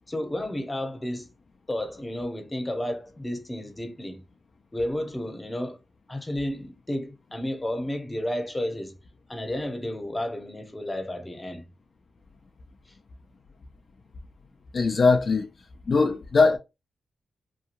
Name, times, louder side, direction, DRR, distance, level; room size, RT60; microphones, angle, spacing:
voice 1, 0.1-1.3 1.7-4.2 4.7-5.8 6.1-9.0 9.3-11.7 12.9-13.0, left 1 dB, 20° left, 0.8 m, -32 dB
voice 2, 14.7-15.5 15.9-16.6, left 4 dB, 60° left, 0.4 m, -20 dB
2.9 x 2.3 x 2.4 m
cardioid pair, 55°, 0 cm